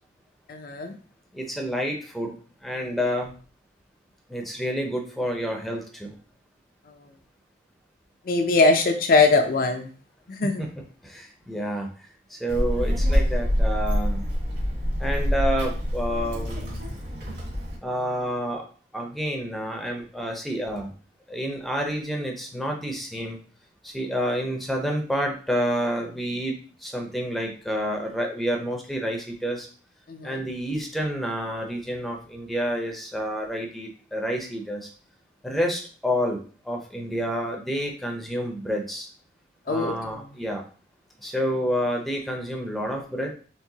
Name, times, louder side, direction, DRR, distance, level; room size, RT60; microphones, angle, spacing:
voice 1, 0.5-0.9 8.3-9.9 10.3-10.7 30.1-30.4 39.7-40.3, left 3 dB, 50° left, 5 dB, 0.5 m, -22 dB
voice 2, 1.3-2.3 2.6-3.3 4.3-6.1 10.6-10.7 11.0-11.9 12.3-14.2 15.0-17.0 17.8-18.6 18.9-20.9 21.3-23.4 23.8-29.7 30.2-34.9 35.4-39.1 39.7-40.6 41.2-43.3, equal, ahead, 1 dB, 0.6 m, -29 dB
Child speech kid speaking, 12.5-17.8, equal, 55° right, 2.0 m, -25 dB
4.6 x 3.5 x 2.8 m, 0.40 s
head